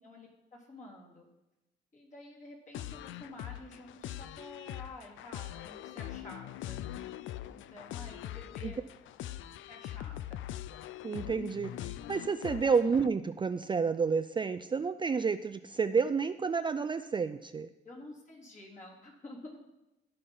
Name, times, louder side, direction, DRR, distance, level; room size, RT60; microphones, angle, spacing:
voice 1, 0.0-1.3 1.9-6.8 7.4-8.8 9.6-10.5 12.4-12.7 17.8-19.7, left 2 dB, 40° left, -2 dB, 3.6 m, -50 dB
sound 1, 2.7-13.1, left 12 dB, 80° left, 0.5 m, -42 dB
voice 2, 11.0-17.7, right 5 dB, 25° right, 10 dB, 0.4 m, -30 dB
15.5 x 5.4 x 5.6 m, 0.97 s
cardioid pair, 90°, 20 cm